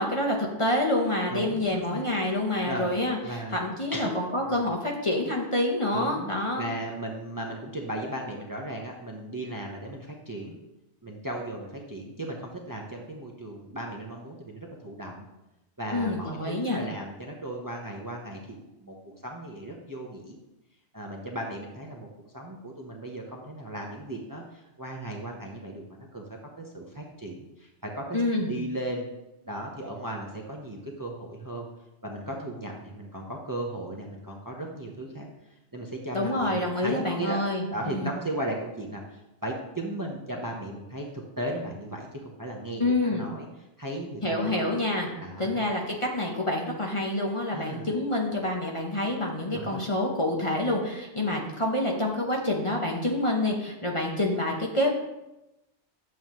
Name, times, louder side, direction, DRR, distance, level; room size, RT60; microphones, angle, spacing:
voice 1, 0.0-6.6 15.9-16.8 28.1-28.6 36.1-38.1 42.8-43.2 44.2-45.1 45.4-54.9, left 1 dB, 30° left, -1 dB, 1.0 m, -27 dB
voice 2, 1.3-2.1 2.6-3.6 3.9-4.1 4.4-4.7 5.9-10.6 11.0-15.3 15.8-20.4 20.9-22.1 22.3-26.2 26.6-28.2 28.5-29.1 29.4-31.7 32.0-35.3 35.7-37.4 37.7-43.5 43.8-44.7 45.2-45.7 47.5-47.9 49.5-49.8, right 1 dB, 20° right, 0 dB, 0.9 m, -36 dB
9.4 x 7.1 x 3.1 m, 0.96 s
omnidirectional pair, 1.2 m